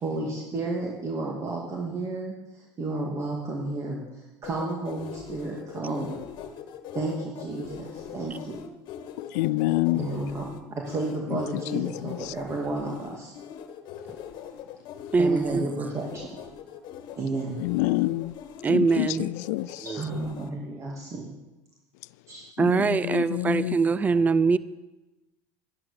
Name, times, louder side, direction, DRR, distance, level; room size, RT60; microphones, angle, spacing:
voice 1, 0.0-6.5 6.9-8.6 9.9-13.3 15.2-16.4 17.2-17.6 19.8-21.4 22.3-22.4, right 2 dB, 35° right, 2.4 m, -32 dB
sound 1, 4.4-20.5, left 9 dB, 55° left, 1.4 m, -41 dB
voice 2, 9.2-10.1 11.7-11.9 17.6-18.3 18.7-19.9 22.6-23.8, left 19 dB, 80° left, 0.4 m, -27 dB
voice 3, 15.1-15.7 18.6-19.3 19.6-20.0 22.6-24.6, right 4 dB, 20° right, 0.5 m, -23 dB
12.0 x 10.5 x 7.0 m
supercardioid pair, 110°, 9 cm